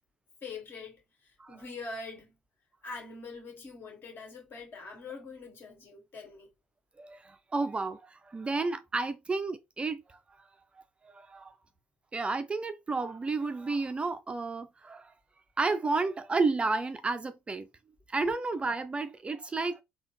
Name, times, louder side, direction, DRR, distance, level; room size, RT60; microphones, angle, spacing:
voice 1, 0.4-2.4 2.8-6.5, left 3 dB, 45° left, 2.0 m, -44 dB
voice 2, 7.0-10.2 11.0-11.5 12.1-15.1 15.6-17.7 18.1-19.8, right 3 dB, 25° right, 0.4 m, -31 dB
3.7 x 2.3 x 3.4 m
hypercardioid pair, 60°, 5 cm